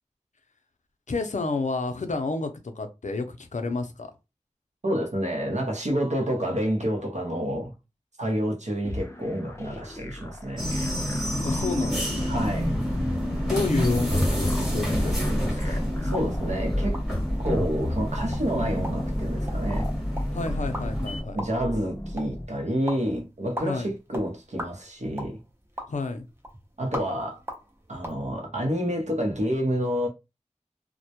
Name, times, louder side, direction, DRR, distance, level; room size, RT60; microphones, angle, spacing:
voice 1, 1.1-4.1 11.4-12.3 13.5-15.8 20.3-21.4 23.7-23.9 25.9-26.3, left 3 dB, 75° left, 0.4 m, -30 dB
voice 2, 4.8-7.7 8.2-10.7 12.3-12.7 15.6-15.8 16.1-17.0 17.4-19.9 21.3-25.4 26.8-27.4 27.9-30.1, equal, 70° right, 0.7 m, -28 dB
sound 1, 8.8-22.5, left 1 dB, 20° left, 0.5 m, -34 dB
sound 2, 10.6-21.2, equal, 5° right, 1.1 m, -28 dB
sound 3, 16.0-28.2, equal, 20° right, 0.6 m, -42 dB
2.1 x 2.0 x 2.8 m
wide cardioid pair, 50°, 12 cm